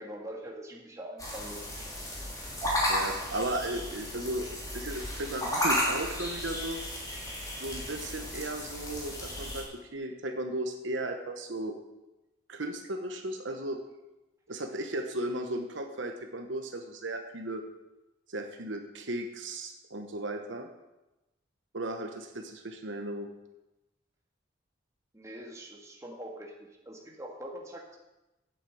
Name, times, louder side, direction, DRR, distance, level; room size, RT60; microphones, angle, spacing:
voice 1, 0.0-1.6 25.1-28.0, right 1 dB, 15° right, -1 dB, 1.8 m, -43 dB
sound 1, 1.2-9.6, equal, 15° left, 2.8 m, -33 dB
voice 2, 2.9-4.5 4.7-6.8 7.6-11.7 12.5-13.8 14.5-17.6 18.3-20.7 21.7-23.3, right 1 dB, 70° right, 5 dB, 1.1 m, -35 dB
8.7 x 8.3 x 7.9 m, 1.0 s
head